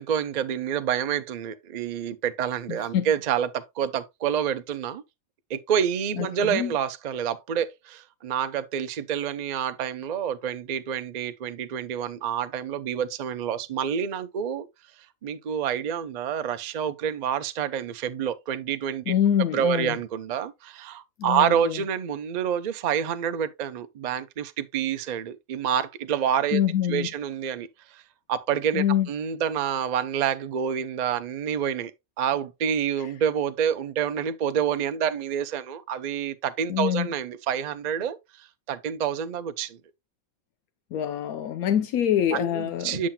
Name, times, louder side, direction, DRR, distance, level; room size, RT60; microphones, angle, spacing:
voice 1, 0.0-5.0 5.5-14.7 15.2-19.1 19.5-26.6 26.9-28.0 28.3-31.9 32.2-39.8 42.3-43.1, right 8 dB, 60° right, 0.4 m, -28 dB
voice 2, 2.7-3.1 6.1-6.7 19.1-20.0 21.2-21.8 26.5-27.1 28.7-29.1 36.7-37.1 40.9-43.1, left 10 dB, 85° left, 1.1 m, -25 dB
7.4 x 7.3 x 2.2 m
omnidirectional pair, 1.5 m